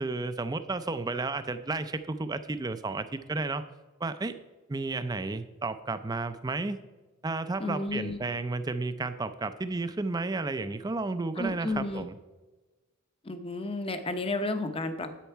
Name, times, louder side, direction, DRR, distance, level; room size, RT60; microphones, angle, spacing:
voice 1, 0.0-3.7 4.0-4.3 4.7-6.8 7.2-12.1, right 3 dB, 20° right, 11 dB, 0.4 m, -32 dB
voice 2, 7.6-8.2 11.4-12.0 13.2-15.2, left 2 dB, 25° left, 9 dB, 0.7 m, -32 dB
10.0 x 8.2 x 4.5 m, 1.2 s
head